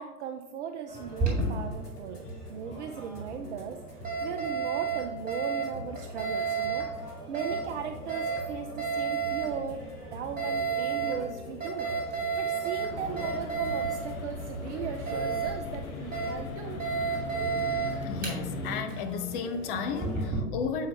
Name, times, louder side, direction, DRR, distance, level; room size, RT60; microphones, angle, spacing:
voice 1, 0.0-16.8, right 7 dB, 50° right, 5 dB, 0.6 m, -38 dB
sound 1, 0.9-20.3, left 1 dB, 80° left, 1.6 m, -45 dB
Alarm, 1.0-20.4, right 5 dB, 20° right, 2.0 m, -33 dB
sound 2, 12.9-18.8, left 3 dB, 65° left, 0.9 m, -38 dB
voice 2, 18.0-20.9, left 5 dB, 35° left, 8 dB, 0.6 m, -33 dB
7.2 x 4.6 x 3.3 m, 1.1 s
figure-of-eight pair, 110°, 46 cm